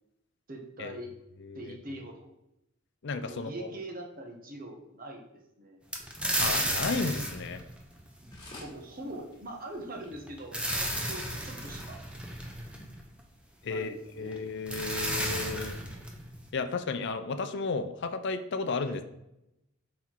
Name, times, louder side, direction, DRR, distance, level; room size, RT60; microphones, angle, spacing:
voice 1, 0.5-1.1 1.5-2.3 3.2-5.2 5.6-5.8 8.5-12.0 13.7-14.4 18.8-19.0, right 1 dB, 45° right, 2 dB, 1.1 m, -42 dB
voice 2, 1.4-2.0 3.0-3.7 6.4-7.6 13.6-15.8 16.5-19.0, left 4 dB, 60° left, 10 dB, 0.5 m, -33 dB
sound 1, 5.9-8.6 10.1-13.2 14.3-14.4 14.7-16.5, right 1 dB, 5° right, 0.8 m, -33 dB
sound 2, 7.9-8.1 8.3-8.8 9.3-9.4 9.7-9.8 10.0-10.1 10.7-10.8, left 2 dB, 25° left, 1.8 m, -47 dB
5.9 x 4.2 x 4.5 m, 0.86 s
head